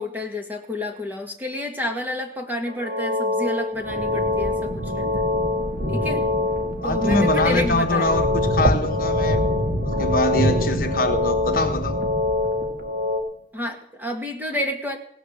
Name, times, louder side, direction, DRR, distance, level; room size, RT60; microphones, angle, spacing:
voice 1, 0.0-5.2 5.9-6.2 6.8-8.2 13.5-15.0, left 1 dB, 10° right, 3 dB, 1.8 m, -29 dB
sound 1, 2.7-13.2, left 2 dB, 70° right, 2.9 m, -25 dB
sound 2, 3.7-13.0, equal, 50° right, 2.0 m, -27 dB
voice 2, 6.8-9.4 9.8-12.0, left 2 dB, 50° left, 5 dB, 1.3 m, -23 dB
17.0 x 9.9 x 6.7 m, 0.68 s
head